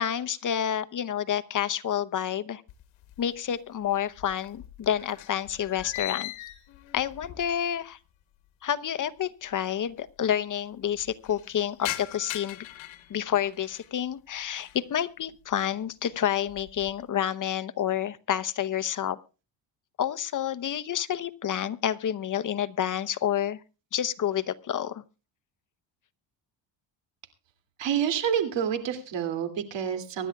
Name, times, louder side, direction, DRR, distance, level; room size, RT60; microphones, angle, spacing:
voice 1, 0.0-2.6 3.2-6.3 6.9-8.0 8.6-12.6 13.1-19.2 20.0-23.6 23.9-25.0, left 10 dB, 45° left, 14 dB, 0.8 m, -29 dB
sound 1, 2.7-3.6 3.8-7.9 8.2-8.3 9.2-9.3 9.5-9.6 9.8-10.3 10.7-13.9 14.4-14.9 15.3-15.7 16.1-17.0, left 15 dB, 80° left, 1.3 m, -41 dB
voice 2, 27.8-30.3, right 8 dB, 70° right, 8 dB, 2.6 m, -28 dB
24.0 x 11.0 x 2.3 m, 0.33 s
cardioid pair, 95°, 46 cm